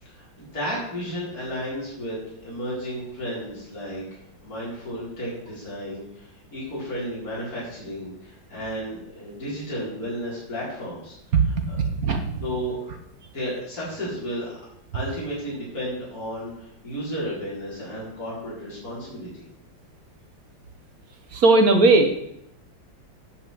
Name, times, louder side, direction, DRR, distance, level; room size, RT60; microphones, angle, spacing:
voice 1, 0.0-11.1 11.7-11.8 12.4-12.9 13.3-14.5 14.9-19.4, equal, 45° left, -7 dB, 4.9 m, -33 dB
voice 2, 11.3-12.4 21.3-22.1, right 3 dB, 55° right, 6 dB, 1.4 m, -18 dB
10.0 x 5.6 x 7.9 m, 0.76 s
omnidirectional pair, 2.1 m